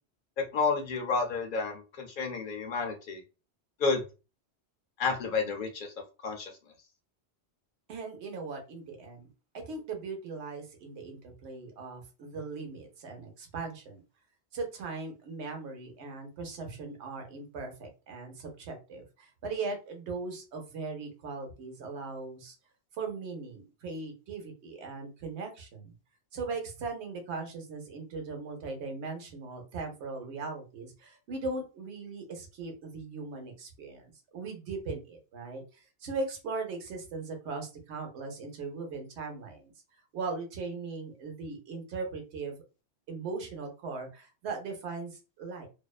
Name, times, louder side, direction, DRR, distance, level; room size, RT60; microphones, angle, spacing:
voice 1, 0.5-3.2 3.8-4.0 5.0-5.9 6.2-6.5, left 4 dB, 55° left, 3 dB, 0.7 m, -30 dB
voice 2, 7.9-9.3 9.5-14.0 14.5-22.5 22.9-25.9 26.3-39.7 40.1-42.6 43.1-45.7, right 4 dB, 80° right, 3 dB, 1.0 m, -39 dB
2.5 x 2.1 x 2.3 m, 0.31 s
omnidirectional pair, 1.1 m